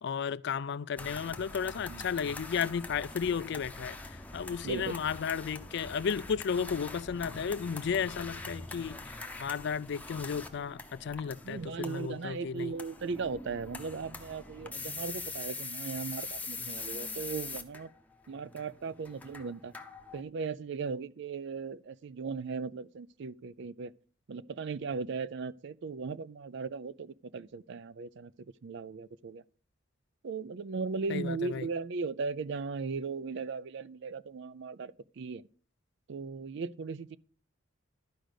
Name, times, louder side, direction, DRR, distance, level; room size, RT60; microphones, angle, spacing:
voice 1, 0.0-12.7 31.1-31.7, left 6 dB, 55° left, 0.4 m, -34 dB
sound 1, 1.0-20.2, left 3 dB, 10° left, 0.7 m, -43 dB
voice 2, 4.6-5.0 11.4-17.9 18.3-19.7 20.1-23.9 24.3-28.3 28.6-29.4 30.2-35.4 36.1-37.2, right 4 dB, 60° right, 0.4 m, -37 dB
12.0 x 5.1 x 6.4 m
head